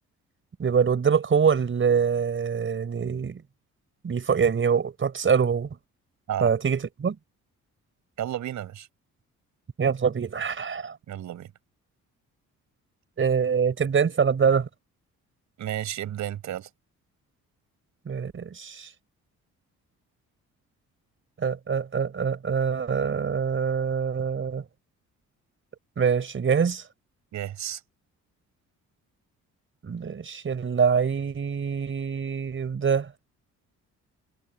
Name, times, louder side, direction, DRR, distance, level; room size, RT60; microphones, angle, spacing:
voice 1, 0.6-3.4 4.0-5.7 6.4-7.2 9.8-11.0 13.2-14.7 18.1-18.9 21.4-24.6 26.0-26.8 29.8-33.1, right 6 dB, 40° right, 4.7 m, -24 dB
voice 2, 8.2-8.9 11.1-11.5 15.6-16.7 27.3-27.8, right 11 dB, 70° right, 5.2 m, -32 dB
cardioid pair, 90°, 30 cm